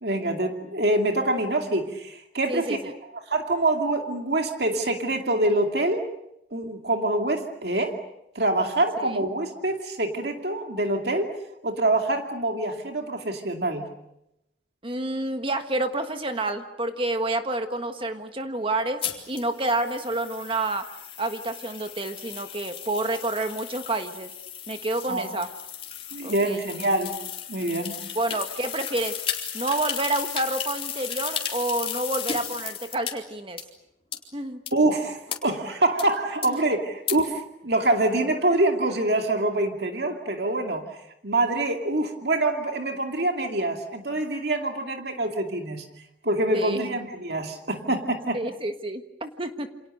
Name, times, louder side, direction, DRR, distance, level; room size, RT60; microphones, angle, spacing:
voice 1, 0.0-2.8 3.3-6.0 6.5-8.0 8.3-11.3 11.6-13.9 25.1-25.3 26.1-27.2 27.5-28.0 34.7-40.9 41.2-45.8 46.2-48.4, right 2 dB, 60° right, 4 dB, 2.4 m, -25 dB
voice 2, 2.5-2.9 14.8-19.0 19.3-20.9 21.2-24.3 24.7-25.5 26.2-26.6 28.1-29.2 29.5-33.6 34.3-34.6 36.5-36.6 46.5-46.8 48.3-49.7, right 2 dB, 30° right, 7 dB, 1.5 m, -29 dB
sound 1, 19.0-33.1 33.6-33.7 34.1-34.2 34.7-34.8 35.3-35.4 36.0-36.1 36.4-36.5 37.1-37.2, left 8 dB, 30° left, 3.9 m, -35 dB
29.0 x 27.5 x 6.6 m, 0.83 s
head